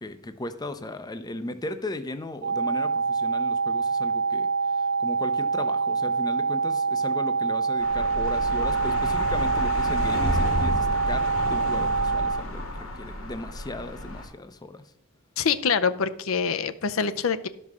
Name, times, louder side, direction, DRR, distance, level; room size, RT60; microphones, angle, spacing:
voice 1, 0.0-14.9, left 2 dB, 20° left, 9 dB, 0.6 m, -36 dB
sound 1, 2.4-12.4, right 5 dB, 55° right, 0.5 m, -25 dB
sound 2, 7.8-14.3, left 1 dB, 90° left, 2.7 m, -30 dB
voice 2, 15.4-17.5, left 6 dB, 70° left, 11 dB, 0.6 m, -25 dB
12.0 x 5.4 x 6.2 m, 0.79 s
head